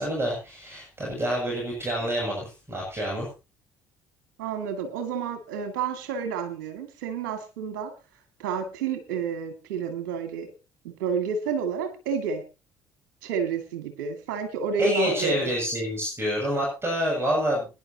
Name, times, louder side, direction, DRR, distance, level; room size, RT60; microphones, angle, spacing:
voice 1, 0.0-3.3 14.8-17.7, equal, 25° right, -2 dB, 7.5 m, -27 dB
voice 2, 4.4-7.9 8.4-10.5 10.8-12.4 13.2-15.5, right 6 dB, 75° right, 6 dB, 2.3 m, -30 dB
21.5 x 10.5 x 2.9 m, 0.30 s
hypercardioid pair, 50°, 10 cm